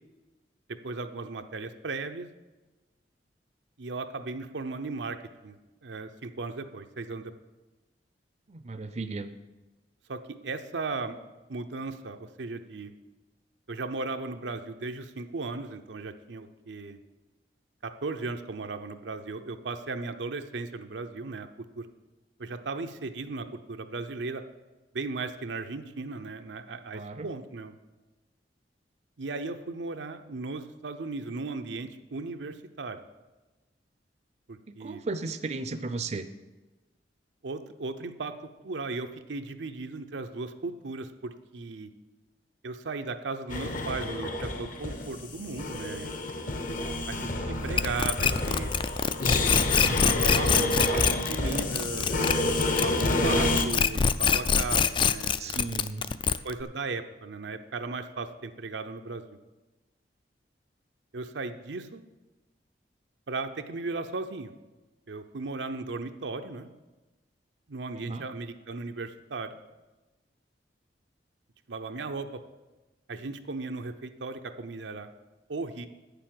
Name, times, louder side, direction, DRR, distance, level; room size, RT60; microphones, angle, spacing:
voice 1, 0.7-2.3 3.8-5.2 5.4-7.3 10.1-11.2 11.5-12.9 13.7-17.0 17.8-21.9 22.4-24.4 24.9-27.8 29.2-33.0 34.5-35.0 37.4-38.3 38.6-41.9 42.6-46.1 47.1-48.7 49.4-55.6 56.4-59.2 61.1-62.0 63.3-64.5 65.1-66.7 67.7-69.6 71.7-72.4 73.1-75.1 75.5-75.9, right 3 dB, 90° right, 7 dB, 0.7 m, -36 dB
voice 2, 8.5-9.3 26.9-27.3 34.7-36.3 55.4-56.1 67.9-68.2, right 3 dB, 40° right, 9 dB, 0.5 m, -35 dB
sound 1, 43.5-53.7, left 2 dB, 50° left, 1.0 m, -29 dB
sound 2, 47.8-53.3 53.5-56.6, left 7 dB, 30° left, 0.3 m, -24 dB
9.1 x 6.9 x 7.6 m, 1.1 s
head